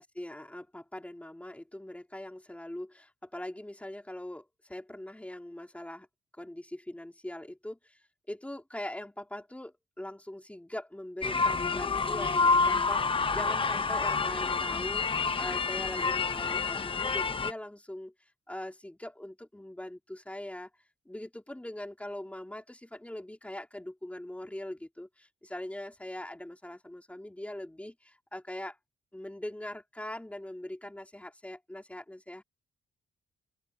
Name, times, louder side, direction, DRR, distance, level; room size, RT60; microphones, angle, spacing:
voice 1, 0.0-6.1 6.4-8.0 8.3-18.1 18.5-20.7 21.0-28.8 29.1-32.4, left 1 dB, 5° left, 3.0 m, -42 dB
sound 1, 11.2-17.5, left 4 dB, 25° left, 0.7 m, -28 dB
open air
cardioid pair, 115°, 20 cm